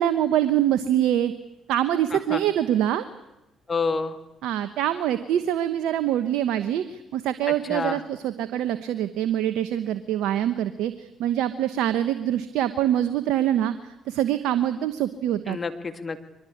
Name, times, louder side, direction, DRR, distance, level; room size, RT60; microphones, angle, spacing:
voice 1, 0.0-1.3 1.7-3.0 4.4-15.6, right 11 dB, 75° right, 11 dB, 1.0 m, -24 dB
voice 2, 2.1-2.4 3.7-4.2 7.5-8.0 15.5-16.2, left 4 dB, 35° left, 9 dB, 2.1 m, -29 dB
23.5 x 20.5 x 8.6 m, 0.92 s
hypercardioid pair, 55°, 0 cm